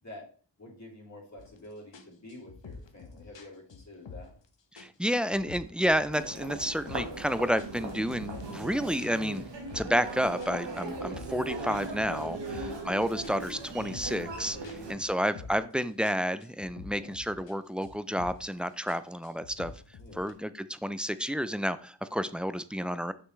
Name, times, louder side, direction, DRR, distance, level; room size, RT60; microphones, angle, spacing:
voice 1, 0.6-4.3 8.4-8.8 12.4-12.8 14.5-14.9 16.9-17.1 20.0-20.3, left 1 dB, 40° left, -2 dB, 3.1 m, -49 dB
sound 1, 1.4-1.6 1.9-4.5 4.8-6.3 6.5-7.2 7.6-10.1 10.4-12.9 13.2-15.8 16.0-17.6 17.8-18.5 18.9-20.3, left 4 dB, 75° left, 1.1 m, -48 dB
voice 2, 4.7-9.4 9.7-19.7 20.2-23.1, equal, ahead, 13 dB, 0.4 m, -30 dB
Human voice, 6.1-14.9, right 2 dB, 70° right, 1.6 m, -39 dB
6.4 x 5.8 x 3.2 m, 0.41 s
cardioid pair, 50°, 44 cm